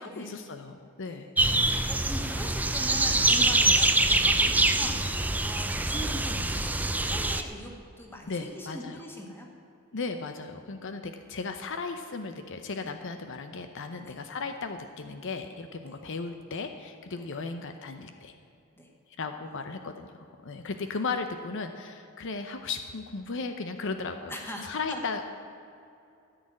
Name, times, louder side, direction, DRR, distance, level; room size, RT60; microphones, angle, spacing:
voice 1, 0.0-1.3 3.7-3.8 8.3-9.0 9.9-18.3 19.2-20.1 20.4-25.2, left 4 dB, 60° left, 7 dB, 0.7 m, -36 dB
voice 2, 1.0-1.3 1.6-7.7 8.0-9.5 14.0-14.2 15.9-16.0 17.2-17.3 18.8-18.9 19.4-19.9 24.3-25.0, equal, 10° left, 1 dB, 1.8 m, -42 dB
sound 1, 1.4-7.4, right 2 dB, 10° right, 0.5 m, -24 dB
14.0 x 6.5 x 9.8 m, 2.7 s
head